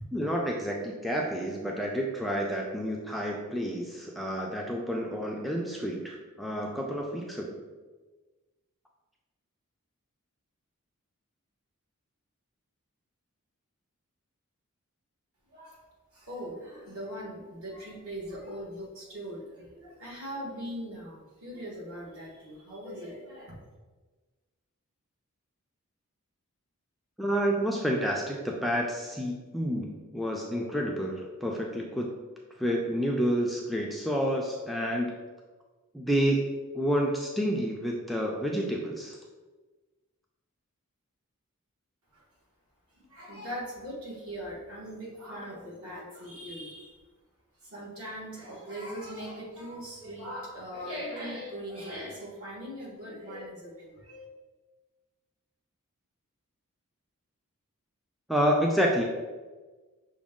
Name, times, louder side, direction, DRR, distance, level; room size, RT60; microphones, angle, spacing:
voice 1, 0.1-7.6 27.2-32.1 32.6-35.1 35.9-39.2 58.3-59.0, equal, ahead, -1 dB, 0.3 m, -29 dB
voice 2, 16.3-23.5 43.1-46.9 47.7-54.2, equal, 70° right, -4 dB, 1.3 m, -40 dB
6.0 x 2.2 x 3.6 m, 1.3 s
head